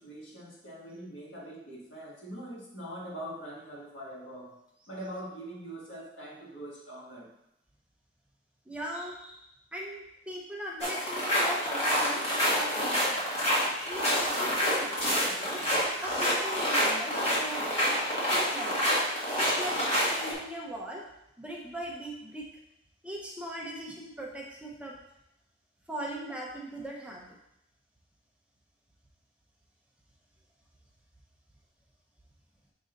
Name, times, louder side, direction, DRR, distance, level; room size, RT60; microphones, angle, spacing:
voice 1, 0.0-4.5 4.9-7.3, right 1 dB, 75° left, -4 dB, 1.8 m, -43 dB
voice 2, 8.7-9.5 9.7-13.2 13.9-15.7 16.0-18.0 18.3-18.8 19.4-19.8 20.1-21.0 21.4-22.5 23.0-25.0 25.9-27.4, right 1 dB, 5° right, -2 dB, 0.6 m, -40 dB
sound 1, 10.8-20.3, equal, 30° left, 1.6 m, -27 dB
6.2 x 3.8 x 3.9 m, 0.84 s
head